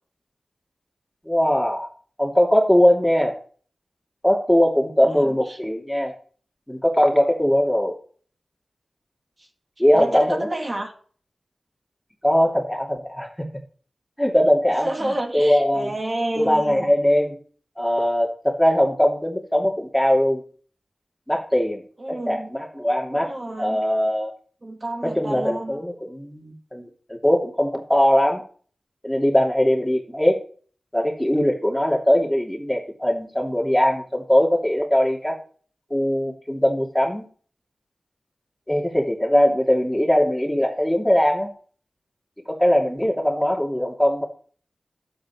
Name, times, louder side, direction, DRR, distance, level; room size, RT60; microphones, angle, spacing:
voice 1, 1.2-1.9 2.2-3.4 4.2-6.1 6.7-7.9 9.8-10.5 12.2-13.5 14.2-15.9 16.4-17.4 17.8-20.4 21.3-21.8 22.1-23.3 23.6-24.3 25.0-28.4 29.0-30.4 30.9-35.4 35.9-37.3 38.7-41.5 42.5-44.3, equal, 5° left, 2.9 m, -20 dB
voice 2, 5.0-5.6 9.4-9.5 9.9-10.9 14.8-16.9 22.0-22.5 23.1-23.8 24.6-25.8, right 1 dB, 35° right, 2.4 m, -30 dB
11.5 x 8.0 x 4.6 m
wide cardioid pair, 65°, 0 cm